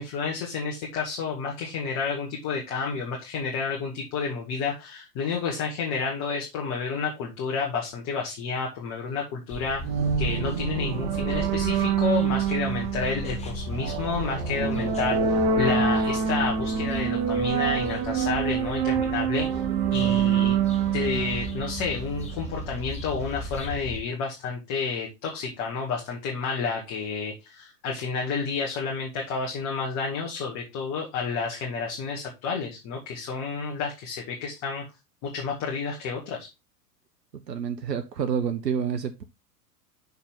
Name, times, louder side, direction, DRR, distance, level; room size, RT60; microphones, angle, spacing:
voice 1, 0.0-9.8 10.2-19.5 19.9-20.6 20.9-34.8 35.2-36.5, left 5 dB, 35° left, 2.0 m, -30 dB
sound 1, 9.5-24.0, equal, 15° left, 1.4 m, -37 dB
sound 2, 9.8-22.3, right 7 dB, 40° right, 1.1 m, -26 dB
voice 2, 37.5-39.2, right 7 dB, 80° right, 0.9 m, -28 dB
6.6 x 5.8 x 3.7 m
figure-of-eight pair, 100°, 48 cm